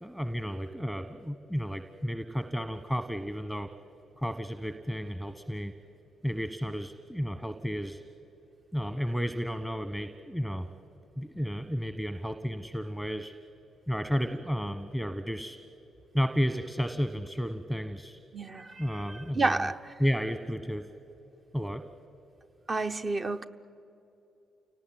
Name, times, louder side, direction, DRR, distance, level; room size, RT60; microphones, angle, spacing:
voice 1, 0.0-3.7 4.2-5.7 6.2-8.0 8.7-10.7 11.2-13.3 13.9-15.6 16.1-18.2 18.8-19.7 20.0-20.9 21.5-21.8, equal, 5° right, 10 dB, 1.3 m, -32 dB
voice 2, 18.3-19.9 22.7-23.4, right 3 dB, 35° right, 9 dB, 1.0 m, -31 dB
28.5 x 18.5 x 9.4 m, 3.0 s
figure-of-eight pair, 40°, 0 cm